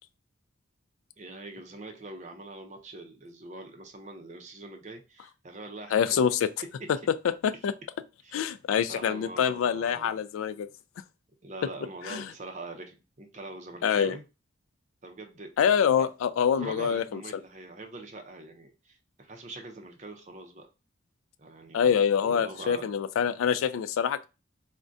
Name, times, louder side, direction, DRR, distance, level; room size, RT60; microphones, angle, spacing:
voice 1, 1.2-6.2 6.8-6.9 8.2-8.4 8.9-10.2 11.4-14.2 15.0-15.5 16.0-16.1 16.6-20.7 21.4-22.0 22.3-22.9, right 2 dB, 35° right, 0.5 m, -43 dB
voice 2, 5.9-6.5 7.2-7.3 7.6-7.7 8.3-10.7 12.0-12.3 13.8-14.2 15.6-17.2 21.7-24.3, left 7 dB, 80° left, 0.3 m, -25 dB
3.5 x 2.1 x 2.5 m
head